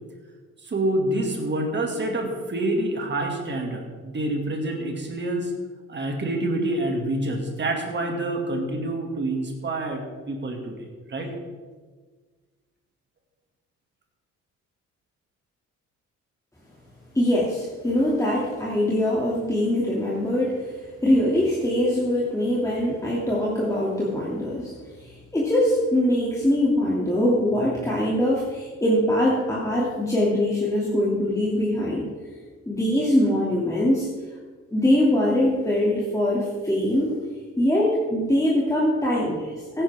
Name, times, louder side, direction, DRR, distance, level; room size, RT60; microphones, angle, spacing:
voice 1, 0.6-5.5 5.9-10.0 10.3-11.3, right 1 dB, 35° right, 2 dB, 2.4 m, -27 dB
voice 2, 17.1-20.7 21.0-24.7 25.0-32.1 32.7-34.1 34.7-37.1 37.6-39.8, left 1 dB, 10° left, -6 dB, 2.6 m, -22 dB
16.0 x 10.0 x 3.7 m, 1.5 s
cardioid pair, 90°, 30 cm